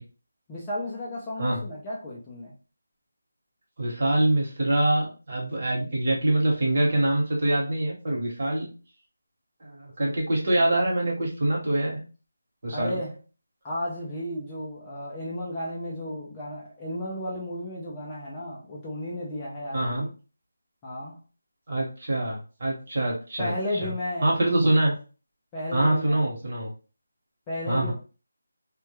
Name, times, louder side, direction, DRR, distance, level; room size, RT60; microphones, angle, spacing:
voice 1, 0.5-2.6 12.7-13.2 13.6-20.1 20.8-21.2 23.4-24.3 25.5-26.3 27.5-27.9, left 1 dB, 10° left, -6 dB, 0.3 m, -33 dB
voice 2, 3.8-8.7 9.6-12.0 12.6-13.0 19.7-20.1 21.7-23.9 24.2-24.9 25.7-26.7 27.7-27.9, right 1 dB, 40° right, -2 dB, 1.0 m, -25 dB
2.2 x 2.1 x 3.0 m, 0.35 s
figure-of-eight pair, 175°, 0 cm